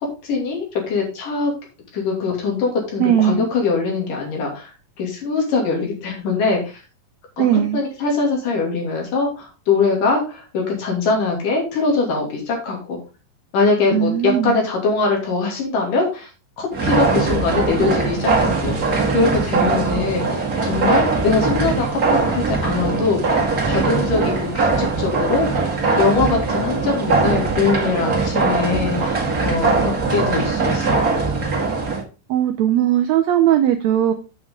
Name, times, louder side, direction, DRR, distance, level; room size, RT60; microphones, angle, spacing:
voice 1, 0.2-1.5 1.9-4.7 5.0-6.8 7.4-7.5 7.7-13.0 13.5-16.3 16.6-25.7 26.0-31.1, left 4 dB, 70° left, 0 dB, 4.3 m, -22 dB
voice 2, 3.0-3.5 7.4-7.8 13.9-14.6 32.3-34.1, right 10 dB, 80° right, 7 dB, 1.6 m, -18 dB
sound 1, 16.7-32.0, right 3 dB, 30° right, 1.9 m, -20 dB
8.5 x 8.1 x 3.8 m, 0.31 s
omnidirectional pair, 4.0 m